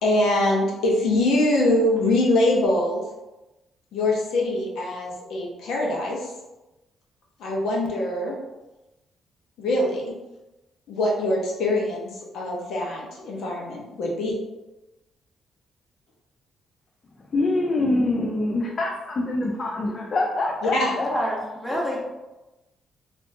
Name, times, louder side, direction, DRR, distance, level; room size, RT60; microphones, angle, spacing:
voice 1, 0.0-3.0 3.9-6.3 7.4-8.4 9.6-10.2 10.9-14.4 20.6-20.9, left 1 dB, 80° left, -2 dB, 0.8 m, -23 dB
voice 2, 17.3-21.1, left 2 dB, 40° left, -1 dB, 0.4 m, -25 dB
voice 3, 20.9-22.0, equal, 5° left, -3 dB, 0.9 m, -28 dB
3.6 x 2.6 x 2.6 m, 1.0 s
cardioid pair, 95°, 0 cm